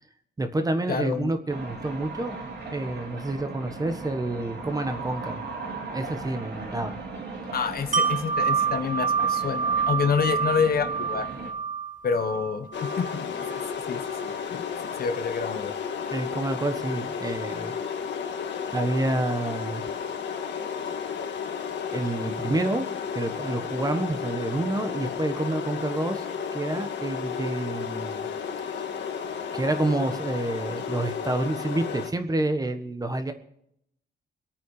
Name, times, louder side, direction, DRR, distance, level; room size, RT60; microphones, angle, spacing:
voice 1, 0.4-2.4 2.7-5.4 5.9-7.0 16.1-17.7 18.7-19.9 21.9-22.9 23.1-28.3 29.5-33.3, right 2 dB, 20° right, 7 dB, 1.4 m, -28 dB
voice 2, 0.9-1.3 7.5-11.3 12.0-13.6 13.9-14.6 15.0-15.7, left 6 dB, 55° left, 9 dB, 1.3 m, -28 dB
sound 1, 1.5-11.5, right 3 dB, 65° right, 3.8 m, -38 dB
Wind chime, 7.9-13.7 14.1-14.2, right 6 dB, 45° right, 1.7 m, -28 dB
sound 2, 12.7-32.1, left 7 dB, 75° left, 1.8 m, -33 dB
24.5 x 9.1 x 5.0 m, 0.73 s
cardioid pair, 130°, 19 cm